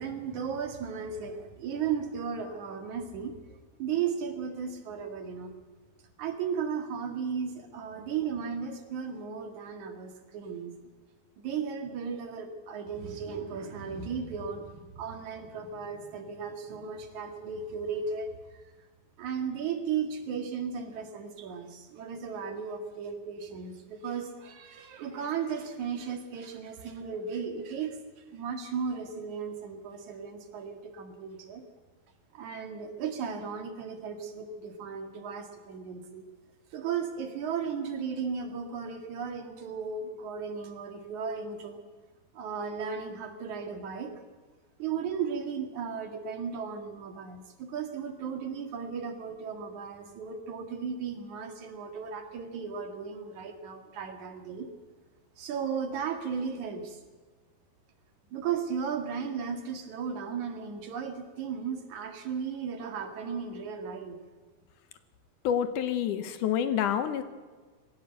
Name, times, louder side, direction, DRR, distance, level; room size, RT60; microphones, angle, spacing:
voice 1, 0.0-5.6 6.2-10.8 11.4-18.6 19.2-31.6 32.3-36.3 36.7-41.8 42.3-44.2 44.8-54.7 55.4-57.0 58.3-64.2, right 6 dB, 50° right, 5 dB, 2.8 m, -35 dB
voice 2, 65.4-67.2, left 9 dB, 80° left, 10 dB, 1.8 m, -28 dB
21.0 x 16.5 x 8.0 m, 1.4 s
omnidirectional pair, 5.0 m